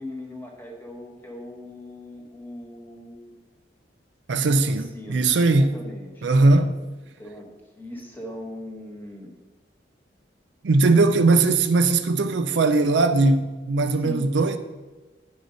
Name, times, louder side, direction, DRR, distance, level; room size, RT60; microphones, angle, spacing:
voice 1, 0.0-3.3 4.5-6.3 7.2-7.5 7.7-9.3 10.9-11.1 14.0-14.3, left 1 dB, 10° left, 1.3 m, -39 dB
voice 2, 4.3-5.7 6.2-6.7 10.6-14.6, right 3 dB, 75° right, 0.5 m, -19 dB
10.0 x 4.9 x 3.9 m
head